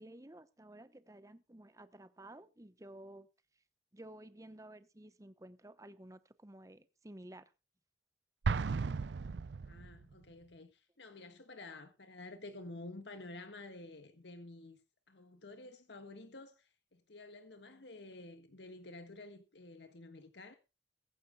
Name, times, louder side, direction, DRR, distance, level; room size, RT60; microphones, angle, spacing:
voice 1, 0.0-3.3 3.9-7.5, right 1 dB, 20° right, 0.9 m, -53 dB
Explosion, 8.4-10.1, right 4 dB, 75° right, 0.5 m, -35 dB
voice 2, 9.6-14.8 15.1-20.5, left 2 dB, 80° left, 1.5 m, -51 dB
22.5 x 9.1 x 2.3 m
head